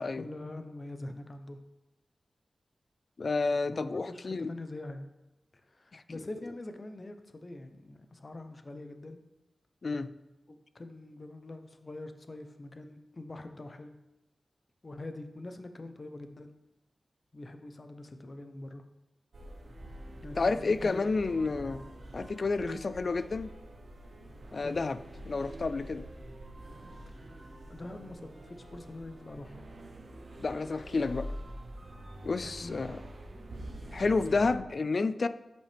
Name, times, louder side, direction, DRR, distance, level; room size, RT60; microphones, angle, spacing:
voice 1, 0.1-1.6 3.7-5.1 5.6-9.2 10.5-14.0 14.8-16.5 17.3-18.8 20.2-21.0 22.6-22.8 24.6-24.8 27.1-27.4 27.7-29.6 32.4-32.8, left 2 dB, 45° left, 7 dB, 0.7 m, -44 dB
voice 2, 3.2-4.5 5.9-6.0 9.8-10.1 20.4-21.9 22.1-23.5 24.5-25.0 25.3-26.1 30.4-31.3 32.2-33.0 33.9-35.3, left 3 dB, 60° left, 13 dB, 0.3 m, -30 dB
sound 1, 19.3-34.6, right 1 dB, 65° right, 1.0 m, -46 dB
7.3 x 5.8 x 3.4 m, 0.99 s
cardioid pair, 50°, 0 cm